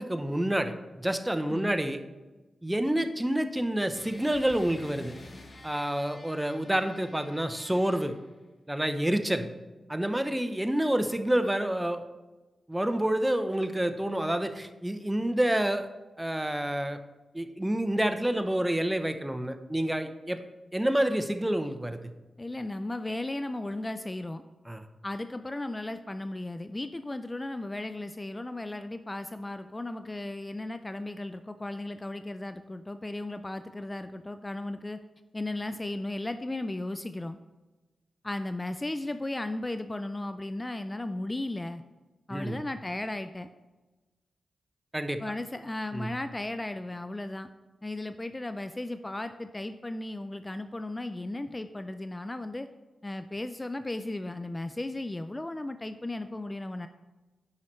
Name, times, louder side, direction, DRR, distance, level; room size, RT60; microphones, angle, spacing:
voice 1, 0.0-2.0 2.6-5.1 5.6-8.2 8.7-9.5 9.9-12.0 12.7-15.9 16.2-17.0 17.3-20.4 20.7-22.1 24.7-24.9 42.3-42.6 44.9-45.2 45.9-46.1, right 1 dB, 10° right, 9 dB, 0.7 m, -28 dB
sound 1, 3.9-8.4, left 2 dB, 45° left, 1.2 m, -49 dB
voice 2, 22.4-24.4 25.0-35.0 35.3-37.4 38.2-41.8 42.3-43.5 45.2-47.5 47.8-52.7 53.0-56.9, left 2 dB, 25° left, 10 dB, 0.4 m, -35 dB
9.6 x 5.6 x 3.1 m, 1.2 s
cardioid pair, 50°, 0 cm